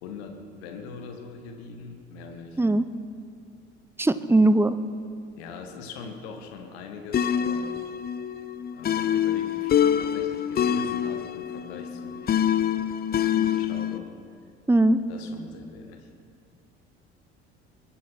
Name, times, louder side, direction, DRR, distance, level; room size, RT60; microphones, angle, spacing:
voice 1, 0.0-2.6 5.4-7.7 8.7-12.6 13.3-14.1 15.1-16.1, left 5 dB, 65° left, 5 dB, 1.8 m, -41 dB
voice 2, 4.0-4.8 14.7-15.0, right 2 dB, 5° right, 13 dB, 0.8 m, -19 dB
sound 1, 7.1-14.0, left 9 dB, 30° left, 0.6 m, -26 dB
22.0 x 11.0 x 6.0 m, 2.3 s
figure-of-eight pair, 55°, 34 cm